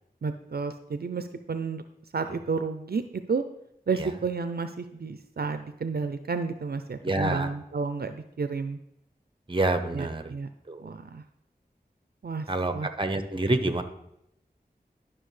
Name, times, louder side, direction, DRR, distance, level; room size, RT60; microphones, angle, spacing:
voice 1, 0.2-1.8 2.1-3.4 3.9-8.8 9.9-10.5 10.8-11.2 12.2-12.5 12.7-12.9, right 4 dB, 70° right, 9 dB, 0.5 m, -31 dB
voice 2, 7.0-7.5 9.5-10.3 10.7-10.9 12.5-13.8, right 2 dB, 30° right, 8 dB, 0.8 m, -27 dB
11.5 x 6.0 x 3.2 m, 0.79 s
wide cardioid pair, 60°, 17 cm